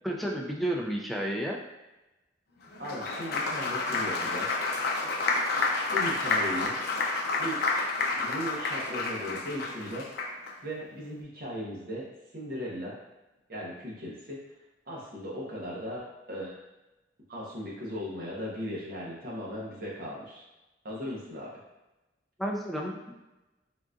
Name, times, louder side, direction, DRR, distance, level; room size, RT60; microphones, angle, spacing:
voice 1, 0.0-1.6 22.4-23.1, right 1 dB, ahead, -2 dB, 0.3 m, -31 dB
Applause, 2.7-10.5, left 3 dB, 60° left, 0.5 m, -29 dB
voice 2, 2.8-4.5 5.9-6.8 7.4-7.6 8.1-10.1 10.6-12.1 12.3-13.0 13.5-14.4 14.9-16.6 17.3-20.4 20.8-21.5, equal, 55° right, -4 dB, 0.9 m, -37 dB
3.8 x 2.4 x 2.3 m, 1.0 s
head